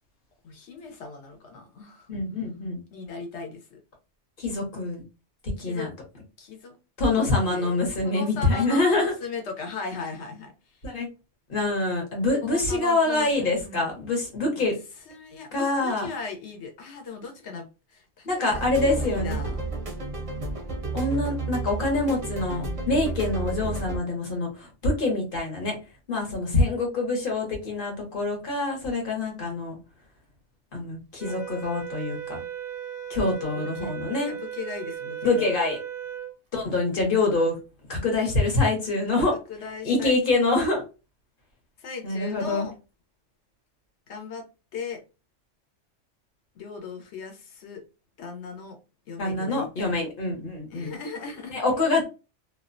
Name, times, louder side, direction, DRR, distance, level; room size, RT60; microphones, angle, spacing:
voice 1, 0.4-2.1 2.9-3.8 5.6-5.9 6.4-6.8 7.2-10.8 12.4-13.9 14.6-14.7 15.1-19.7 33.2-33.3 33.5-33.9 34.2-35.5 39.5-40.1 41.8-42.7 44.1-44.4 44.7-45.0 46.5-47.8 48.2-48.8 49.1-50.0 50.7-51.6, left 4 dB, 70° left, 4 dB, 1.0 m, -38 dB
voice 2, 2.1-2.8 4.4-5.0 5.6-5.9 7.0-9.1 10.8-11.1 11.5-14.7 15.5-16.1 18.3-19.4 20.9-25.8 26.1-29.8 30.7-32.4 33.1-34.3 35.2-35.8 36.5-37.6 37.9-39.4 39.8-40.8 42.0-42.7 49.2-50.9 51.5-52.0, left 2 dB, 50° left, 1 dB, 1.0 m, -25 dB
sound 1, 18.5-24.0, right 3 dB, 45° right, 0.4 m, -31 dB
sound 2, 31.2-36.4, right 9 dB, 90° right, 0.9 m, -36 dB
2.4 x 2.1 x 2.4 m, 0.30 s
omnidirectional pair, 1.2 m